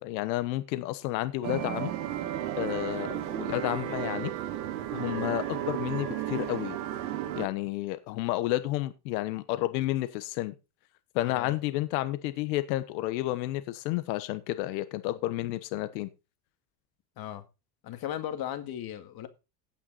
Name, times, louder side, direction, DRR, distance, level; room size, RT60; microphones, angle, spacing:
voice 1, 0.0-1.9 2.5-4.3 4.9-6.8 7.3-10.5 11.1-16.1, left 16 dB, 85° left, 1.3 m, -31 dB
sound 1, 1.4-7.5, right 12 dB, 85° right, 2.1 m, -33 dB
voice 2, 11.2-11.6 17.2-17.5 17.8-19.3, left 11 dB, 45° left, 2.0 m, -36 dB
17.0 x 6.0 x 4.1 m
supercardioid pair, 135°, 50 cm